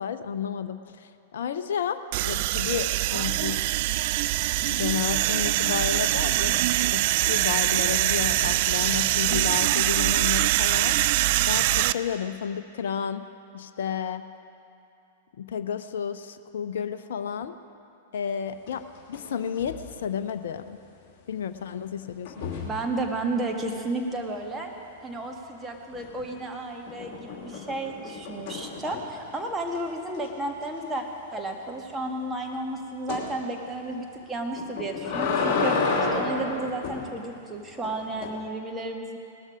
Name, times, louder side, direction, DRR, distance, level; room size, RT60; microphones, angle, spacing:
voice 1, 0.0-3.6 4.6-6.6 6.9-11.2 11.5-13.3 13.5-14.2 15.4-17.5 18.1-20.8 21.3-22.4, left 8 dB, 55° left, 10 dB, 0.6 m, -31 dB
sound 1, 2.1-11.9, right 16 dB, 45° right, 0.3 m, -24 dB
sound 2, 18.7-19.3 19.6-19.9 22.2-22.8 25.9-26.4 26.9-29.2 29.7-29.8 30.1-30.3 30.6-30.7 33.1-33.3 34.6-37.0 37.8-38.3, left 4 dB, 35° left, 2.6 m, -30 dB
voice 2, 22.5-24.7 25.0-31.0 31.3-35.8 36.1-39.2, right 2 dB, 10° right, 1 dB, 1.7 m, -32 dB
18.5 x 12.5 x 5.0 m, 2.7 s
figure-of-eight pair, 100°, 0 cm